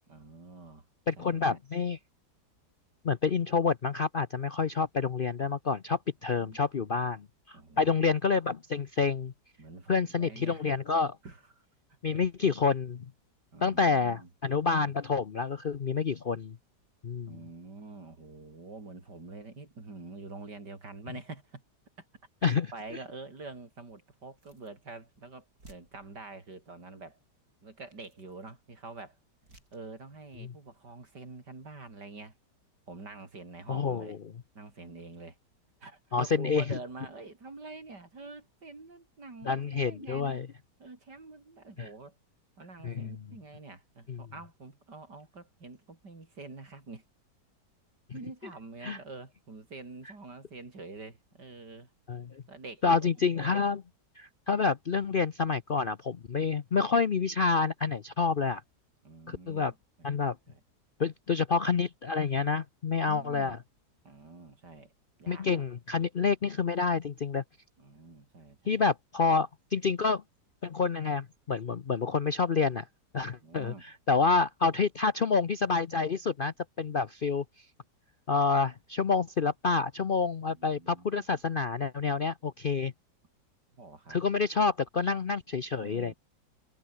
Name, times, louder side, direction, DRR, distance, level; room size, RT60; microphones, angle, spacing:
voice 1, 0.1-0.8 1.2-1.6 6.3-6.9 7.5-7.9 9.6-10.7 11.2-11.7 12.1-12.2 13.5-14.3 17.3-21.6 22.0-22.1 22.4-27.2 27.6-29.2 29.7-32.4 32.9-34.2 34.6-35.4 35.8-40.4 40.8-42.2 42.6-47.0 48.1-51.9 52.5-53.8 59.0-60.6 63.0-63.6 64.0-64.9 65.2-65.6 67.8-68.8 73.4-73.8 80.4-81.4 83.8-84.2 85.8-86.1, right 3 dB, 75° right, 5.3 m, -46 dB
voice 2, 1.1-2.0 3.0-9.3 9.9-11.2 12.0-13.1 13.6-16.6 17.0-17.4 22.4-22.7 30.4-30.5 33.7-34.2 36.1-36.8 39.4-40.5 41.8-41.9 42.8-43.1 44.1-44.2 48.8-49.0 52.1-52.4 52.8-53.8 54.2-58.6 59.3-59.7 60.0-60.3 61.0-63.6 65.3-67.4 68.7-70.2 70.6-72.9 73.1-77.4 78.3-82.9 84.1-86.1, left 5 dB, 50° left, 0.7 m, -28 dB
sound 1, 24.4-24.8 25.2-25.3 25.6-26.5 27.5-27.6 27.9-28.5 29.4-29.9 30.3-30.5, right 2 dB, 60° right, 8.4 m, -59 dB
omnidirectional pair, 1.8 m